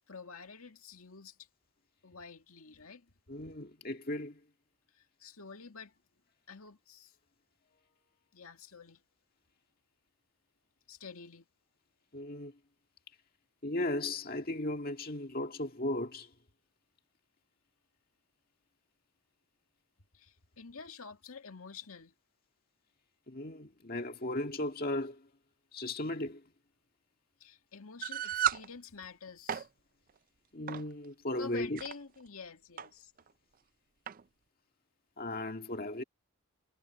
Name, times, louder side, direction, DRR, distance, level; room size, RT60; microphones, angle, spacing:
voice 1, 0.1-1.5 2.0-3.1 4.9-5.9 6.5-7.2 8.3-9.0 10.9-11.5 20.1-22.1 27.4-29.7 31.4-33.1, left 5 dB, 75° left, 2.1 m, -49 dB
voice 2, 3.3-4.4 12.1-12.5 13.6-16.3 23.3-25.3 25.7-26.4 30.5-31.8 35.2-36.0, left 1 dB, 40° left, 2.0 m, -36 dB
sound 1, 28.0-28.7 29.3-29.7 30.7-30.9 31.6-31.9 32.8-32.9 33.2-33.3 34.1-34.2, right 9 dB, 40° right, 0.4 m, -33 dB
head